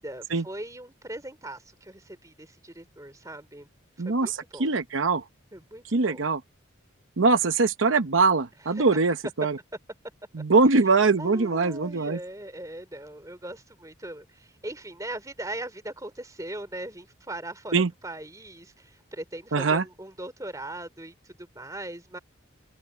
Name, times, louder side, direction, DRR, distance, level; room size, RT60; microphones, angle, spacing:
voice 1, 0.0-3.7 4.0-4.7 5.5-6.2 8.6-9.0 11.2-17.7 18.0-22.2, right 1 dB, 15° right, 3.3 m, -40 dB
voice 2, 4.0-5.2 5.9-6.4 7.2-9.6 10.3-12.2 17.7-17.9 19.5-19.8, right 4 dB, 75° right, 0.9 m, -22 dB
open air
head